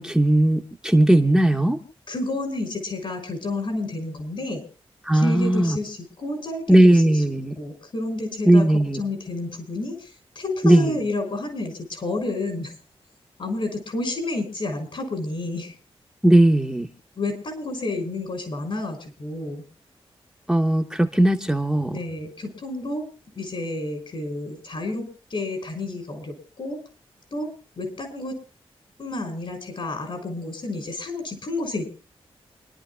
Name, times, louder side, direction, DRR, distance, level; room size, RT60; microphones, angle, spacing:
voice 1, 0.0-1.8 5.0-5.8 6.7-7.5 8.5-9.0 10.6-11.0 16.2-16.9 20.5-22.0, right 1 dB, 5° right, 2 dB, 1.1 m, -18 dB
voice 2, 2.1-4.6 5.1-7.2 7.6-8.6 8.9-10.1 10.3-12.7 13.4-15.7 17.2-19.6 21.9-23.1 23.3-26.8 27.3-27.5 27.8-28.4 29.0-31.9, left 2 dB, 60° left, 5 dB, 6.4 m, -30 dB
29.0 x 12.0 x 2.2 m, 0.33 s
wide cardioid pair, 115°, 10 cm